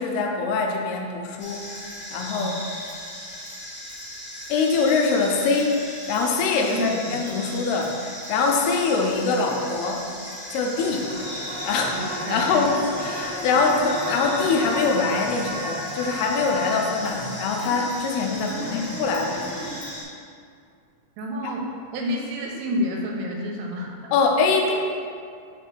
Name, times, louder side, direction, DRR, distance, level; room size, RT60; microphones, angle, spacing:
voice 1, 0.0-1.6 2.1-2.5 4.5-5.8 6.1-10.1 10.5-11.1 11.6-12.0 12.3-19.6 24.1-24.7, left 4 dB, 80° left, 1 dB, 2.6 m, -23 dB
sound 1, 1.4-20.0, equal, 40° left, 1.8 m, -37 dB
voice 2, 6.6-7.2 11.9-12.7 18.6-19.0 21.2-21.7 21.9-24.0, left 1 dB, 85° right, 0 dB, 2.9 m, -29 dB
sound 2, 10.8-19.8, equal, 60° right, 1.5 m, -34 dB
5.9 x 4.5 x 5.9 m, 2.3 s
omnidirectional pair, 4.7 m